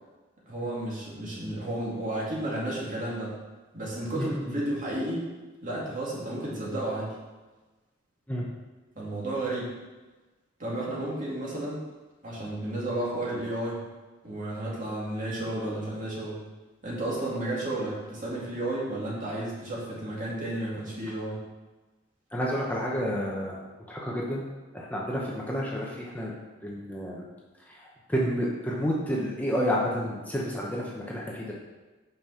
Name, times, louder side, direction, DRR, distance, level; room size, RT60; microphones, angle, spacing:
voice 1, 0.5-3.4 3.7-5.2 5.6-7.2 9.0-9.7 10.6-11.8 12.2-13.8 14.2-16.4 16.8-21.5, right 1 dB, 45° right, -5 dB, 2.3 m, -32 dB
voice 2, 4.1-4.6 8.3-8.5 22.3-23.6 23.9-24.4 24.7-26.3 26.6-27.2 27.6-31.5, equal, 10° left, -4 dB, 0.9 m, -30 dB
5.7 x 5.4 x 5.7 m, 1.2 s
head